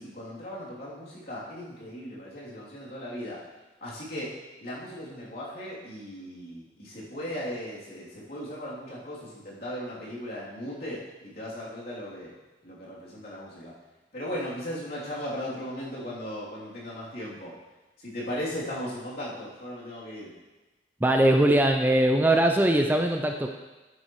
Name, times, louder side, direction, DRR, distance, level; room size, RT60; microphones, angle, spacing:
voice 1, 0.0-3.4 3.8-4.3 4.6-12.3 12.6-13.7 14.1-17.5 18.0-20.3, equal, 55° left, -7 dB, 3.1 m, -37 dB
voice 2, 21.0-23.5, right 1 dB, 10° right, 3 dB, 0.4 m, -21 dB
10.0 x 9.7 x 3.1 m, 1.1 s
head